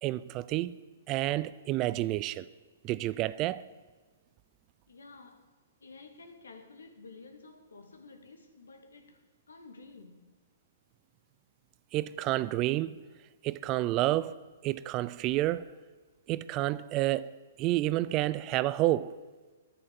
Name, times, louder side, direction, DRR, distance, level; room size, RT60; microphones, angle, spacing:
voice 1, 0.0-0.7 1.1-2.5 2.8-3.6 11.9-13.0 13.4-14.4 14.6-15.7 16.3-17.3 17.6-19.2, right 16 dB, 30° right, 0.5 m, -29 dB
voice 2, 4.9-5.5 5.8-10.4, left 3 dB, 90° left, 2.0 m, -52 dB
10.0 x 9.7 x 8.2 m
hypercardioid pair, 140°, 0 cm